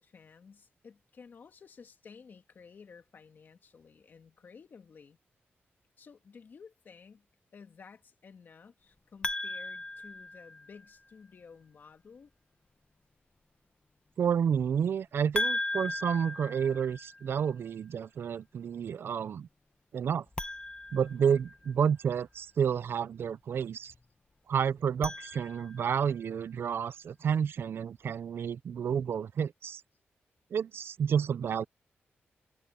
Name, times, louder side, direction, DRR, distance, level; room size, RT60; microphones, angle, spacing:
voice 1, 0.0-5.2 6.0-7.3 7.5-12.3, left 5 dB, 50° left, 2.3 m, -54 dB
sound 1, 9.2-10.9 15.3-17.4 20.3-21.9 24.8-26.0, left 2 dB, 20° left, 1.1 m, -37 dB
voice 2, 14.2-19.5 19.9-20.2 20.9-23.9 24.5-29.8 30.5-31.6, right 7 dB, 65° right, 0.4 m, -30 dB
wide cardioid pair, 140°, 4 cm